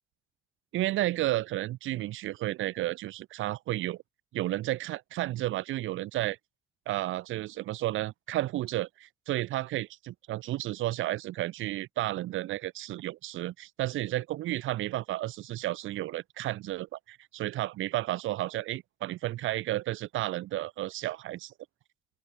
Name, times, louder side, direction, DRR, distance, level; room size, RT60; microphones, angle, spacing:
voice 1, 0.7-4.0 4.3-6.4 6.9-21.5, right 15 dB, 85° right, 1.3 m, -32 dB
open air
cardioid pair, 90°, 20 cm